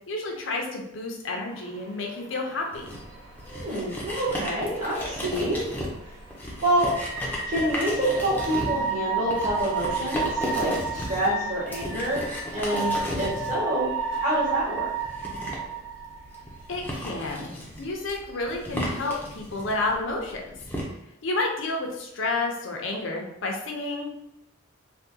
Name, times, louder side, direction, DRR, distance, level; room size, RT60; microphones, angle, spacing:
voice 1, 0.1-2.9 16.7-17.5 17.8-20.4 21.2-24.1, left 2 dB, 70° left, 0 dB, 0.6 m, -30 dB
sound 1, 1.5-17.4, right 5 dB, 65° right, 1.0 m, -33 dB
sound 2, 2.7-20.8, equal, 10° left, 0.5 m, -35 dB
voice 2, 3.5-5.6 6.6-6.9 7.5-12.2 12.5-13.9 14.2-14.9, right 1 dB, 40° right, -7 dB, 1.3 m, -27 dB
3.4 x 2.2 x 2.7 m, 0.83 s
head